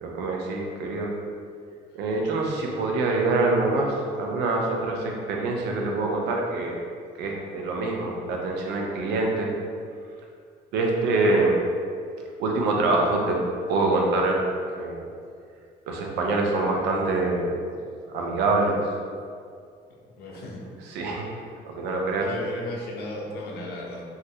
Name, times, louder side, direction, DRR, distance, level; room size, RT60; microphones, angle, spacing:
voice 1, 0.0-1.1 1.9-6.8 7.2-9.5 10.7-11.6 12.4-13.4 13.7-14.4 14.8-15.0 15.9-17.6 18.1-18.8 20.3-20.4 20.9-21.2 21.7-22.3, right 2 dB, 85° right, 0 dB, 0.5 m, -25 dB
voice 2, 20.0-20.6 22.2-24.0, left 1 dB, 70° left, -2 dB, 0.6 m, -35 dB
3.0 x 2.5 x 2.7 m, 2.2 s
cardioid pair, 110°, 17 cm